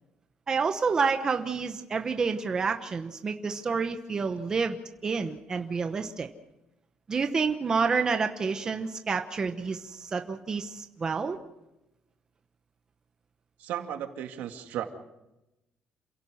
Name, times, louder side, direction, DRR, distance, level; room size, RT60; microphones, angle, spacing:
voice 1, 0.5-4.8 5.0-6.3 7.1-11.4, right 5 dB, 25° right, 6 dB, 1.0 m, -29 dB
voice 2, 13.6-14.8, right 10 dB, 80° right, 5 dB, 2.1 m, -35 dB
28.0 x 17.0 x 6.4 m, 0.97 s
cardioid pair, 180°, 3 cm